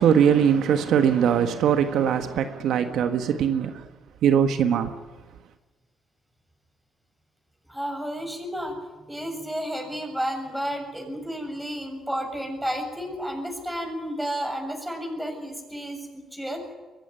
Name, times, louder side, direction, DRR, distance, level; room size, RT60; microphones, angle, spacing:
voice 1, 0.0-3.7 4.2-4.9, right 8 dB, 80° right, 1.6 m, -21 dB
voice 2, 7.7-8.8 9.1-16.0 16.3-16.6, equal, 5° right, 7.0 m, -31 dB
23.0 x 16.0 x 9.8 m
cardioid pair, 90°, 0 cm